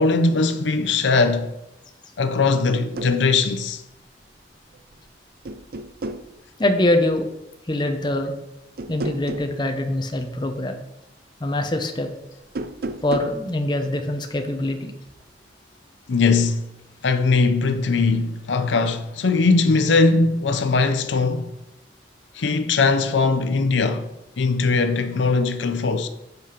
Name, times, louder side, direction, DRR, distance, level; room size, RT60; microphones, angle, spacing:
voice 1, 0.0-1.5 2.2-3.8 16.1-16.6 17.0-21.5 22.3-24.1 24.4-26.1, left 3 dB, 80° left, 0.6 m, -20 dB
sound 1, 2.7-3.2 4.7-5.1 5.4-6.3 8.8-9.5 12.4-13.4, right 2 dB, 55° right, 0.5 m, -32 dB
voice 2, 6.6-7.2 7.7-8.3 8.9-10.8 11.4-12.1 13.0-14.9, left 1 dB, 25° left, 0.8 m, -23 dB
8.1 x 5.1 x 5.2 m
head